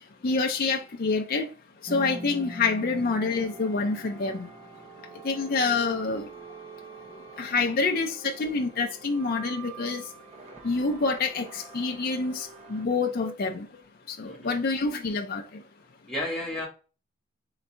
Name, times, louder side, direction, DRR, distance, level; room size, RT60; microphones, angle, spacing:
voice 1, 0.2-1.5 1.8-4.5 5.2-6.3 7.4-10.0 10.6-13.7 14.1-15.4, left 4 dB, 40° left, 0.4 m, -27 dB
sound 1, 1.9-12.9, right 3 dB, 30° right, 0.7 m, -44 dB
voice 2, 14.2-14.6 16.1-16.7, left 1 dB, 5° left, 1.4 m, -33 dB
4.0 x 3.5 x 3.2 m
head